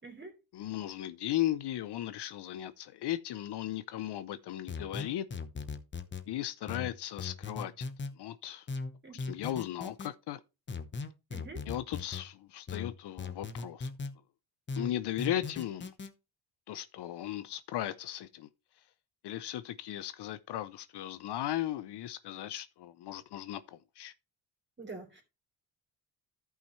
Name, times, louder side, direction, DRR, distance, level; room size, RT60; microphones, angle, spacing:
voice 1, 0.0-0.3 9.0-9.2 11.3-11.6 24.8-25.2, right 3 dB, 25° right, 3.2 m, -45 dB
voice 2, 0.5-5.3 6.3-7.9 8.2-8.6 9.2-10.4 11.7-13.9 14.8-15.9 16.7-18.5 19.2-24.1, left 13 dB, 65° left, 0.7 m, -36 dB
sound 1, 4.7-6.3 6.7-8.1 8.7-10.1 10.7-12.3 12.7-14.1 14.7-16.1, left 4 dB, 25° left, 1.0 m, -38 dB
13.5 x 5.7 x 3.1 m
cardioid pair, 115°, 44 cm